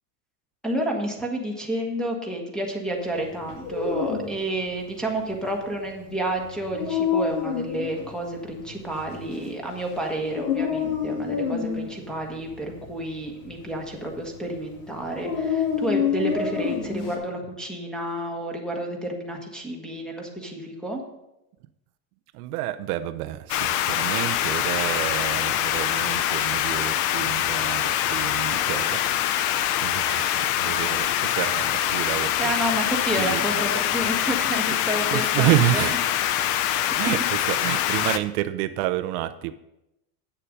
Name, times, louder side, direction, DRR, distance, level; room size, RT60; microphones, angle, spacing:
voice 1, 0.6-21.0 32.4-35.8, right 1 dB, ahead, 1.4 m, -30 dB
Dog, 3.4-17.2, left 7 dB, 85° left, 2.0 m, -29 dB
voice 2, 22.3-32.5 33.2-33.6 35.1-36.1 36.9-39.5, right 14 dB, 70° right, 0.6 m, -29 dB
sound 1, 23.5-38.2, left 11 dB, 40° left, 0.5 m, -24 dB
8.6 x 6.8 x 5.2 m
supercardioid pair, 145°, 46 cm